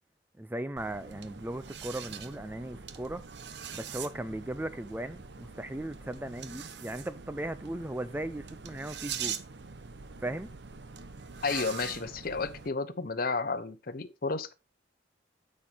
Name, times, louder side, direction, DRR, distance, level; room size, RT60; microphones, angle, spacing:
voice 1, 0.4-3.2 3.7-9.4 10.2-10.5, right 1 dB, 10° right, 0.4 m, -37 dB
sound 1, 0.8-12.7, right 7 dB, 65° right, 0.8 m, -43 dB
voice 2, 11.4-14.5, left 4 dB, 50° left, 0.8 m, -32 dB
10.0 x 7.6 x 3.4 m
head